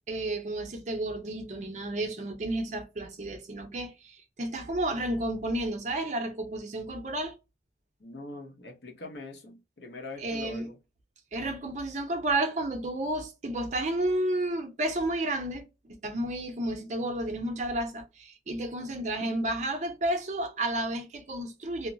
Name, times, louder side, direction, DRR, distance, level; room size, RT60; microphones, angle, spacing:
voice 1, 0.1-7.3 10.2-10.7 11.3-21.9, right 1 dB, 40° right, 0.5 m, -31 dB
voice 2, 8.0-10.8 18.8-19.0, left 2 dB, 70° left, 0.8 m, -43 dB
2.2 x 2.0 x 3.7 m
head